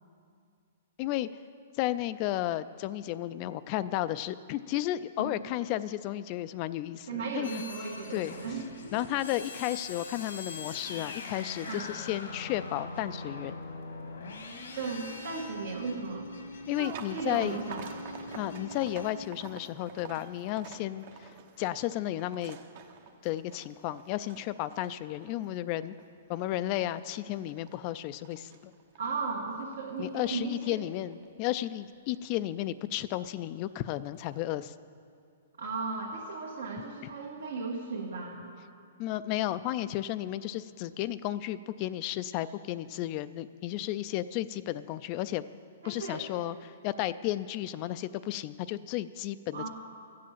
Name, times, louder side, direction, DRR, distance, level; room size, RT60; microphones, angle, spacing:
voice 1, 1.0-1.3 1.8-7.5 8.1-8.3 8.9-13.6 16.7-17.6 18.3-21.3 21.6-22.6 23.2-25.9 26.3-28.7 30.0-34.7 39.0-45.4 45.8-49.7, left 14 dB, 35° left, 14 dB, 0.3 m, -33 dB
voice 2, 7.1-8.7 11.6-11.9 14.7-16.3 17.1-17.9 29.0-30.8 35.6-38.4 45.8-46.3 49.5-49.7, right 4 dB, 80° right, -4 dB, 1.8 m, -36 dB
sound 1, 7.4-19.3, left 3 dB, 90° left, 1.5 m, -42 dB
sound 2, 16.8-31.8 32.1-32.7 33.4-33.5 33.9-34.2, right 6 dB, 50° right, 0.9 m, -48 dB
13.0 x 7.6 x 7.3 m, 2.4 s
hypercardioid pair, 145°, 0 cm